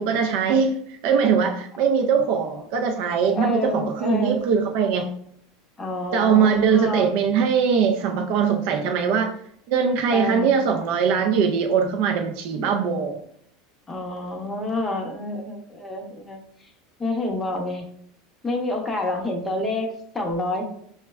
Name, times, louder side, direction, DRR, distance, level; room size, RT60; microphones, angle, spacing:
voice 1, 0.0-5.1 6.1-9.3 9.7-13.2, right 6 dB, 55° right, 4 dB, 0.3 m, -21 dB
voice 2, 3.3-4.4 5.8-7.1 10.1-10.5 12.6-12.7 13.9-16.4 17.0-17.8 18.4-20.6, left 2 dB, 10° left, 1 dB, 0.6 m, -28 dB
5.8 x 2.1 x 2.2 m, 0.66 s
supercardioid pair, 155°, 0 cm